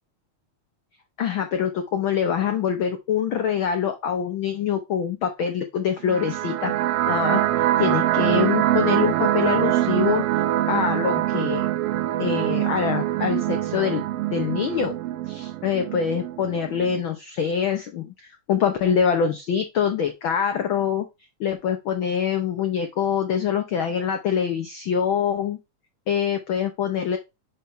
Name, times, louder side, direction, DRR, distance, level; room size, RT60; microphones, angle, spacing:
voice 1, 1.2-6.7 7.1-7.4 7.8-10.2 10.7-11.7 12.2-14.0 14.3-14.9 15.3-21.1 21.4-25.6 26.1-27.2, left 7 dB, 90° left, 6 dB, 1.1 m, -24 dB
sound 1, 6.0-17.0, right 13 dB, 90° right, 1.3 m, -24 dB
6.1 x 5.5 x 3.1 m, 0.23 s
omnidirectional pair, 3.4 m